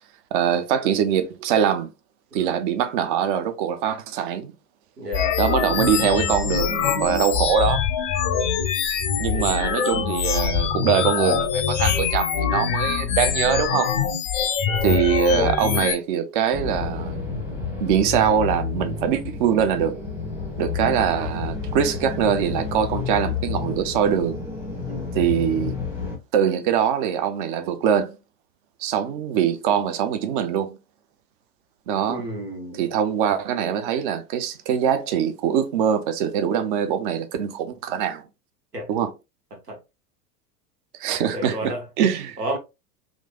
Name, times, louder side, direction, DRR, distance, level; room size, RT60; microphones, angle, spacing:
voice 1, 0.3-1.9 2.3-4.5 5.4-7.8 9.2-13.9 14.8-17.2 17.8-20.0 20.6-24.4 25.1-25.8 26.3-28.2 28.8-30.8 31.9-32.2 32.7-38.2 38.9-39.1 41.0-42.4, right 8 dB, 35° right, 0.4 m, -23 dB
voice 2, 5.0-5.4 9.3-9.6 14.7-15.1 24.9-25.1 32.1-32.9 38.7-38.9 39.7-39.8 41.3-41.8 42.4-42.6, right 1 dB, 85° right, 1.0 m, -32 dB
sound 1, 5.1-16.0, left 8 dB, 35° left, 0.5 m, -23 dB
sound 2, 16.5-26.2, left 5 dB, 5° right, 0.9 m, -30 dB
3.1 x 2.5 x 2.2 m
figure-of-eight pair, 85°, 47 cm